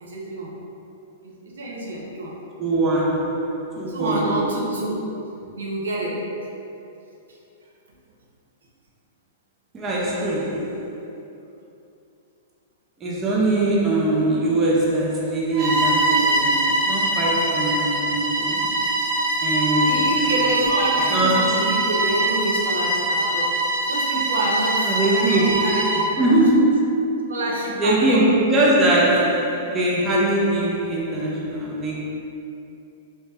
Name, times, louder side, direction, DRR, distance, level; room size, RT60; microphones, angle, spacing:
voice 1, 0.0-0.5 1.2-2.4 3.9-5.1 5.5-6.2 19.8-23.6 23.9-26.4 27.3-28.3, right 1 dB, 90° right, -3 dB, 0.5 m, -28 dB
voice 2, 2.6-4.5 9.7-11.0 13.0-18.9 19.4-20.3 21.1-21.7 24.8-25.9 26.2-27.3 27.8-32.0, right 1 dB, 20° right, -5 dB, 0.5 m, -22 dB
Bowed string instrument, 15.5-26.1, right 1 dB, 40° right, 0.9 m, -22 dB
2.7 x 2.1 x 3.3 m, 2.7 s
hypercardioid pair, 130°, 0 cm